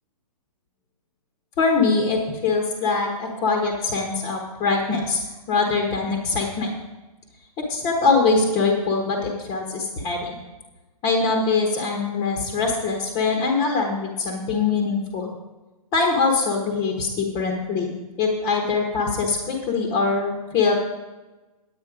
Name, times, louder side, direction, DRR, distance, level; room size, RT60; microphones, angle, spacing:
voice 1, 1.6-6.7 7.6-10.4 11.0-15.3 15.9-17.9 18.2-20.8, left 4 dB, 20° left, 0 dB, 1.1 m, -23 dB
9.5 x 9.4 x 4.9 m, 1.2 s
hypercardioid pair, 165°, 20 cm